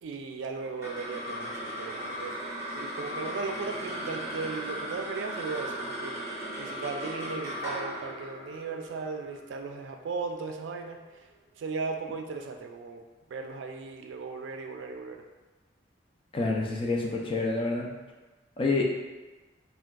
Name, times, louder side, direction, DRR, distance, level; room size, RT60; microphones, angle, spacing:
voice 1, 0.0-2.3 2.7-11.3 11.6-13.0 13.3-15.2, right 4 dB, 85° right, 4 dB, 0.3 m, -37 dB
sound 1, 0.6-11.2, equal, 15° right, 0.7 m, -37 dB
voice 2, 16.3-17.9 18.6-18.8, left 3 dB, 30° left, -1 dB, 0.3 m, -27 dB
3.5 x 2.2 x 2.2 m, 1.2 s
head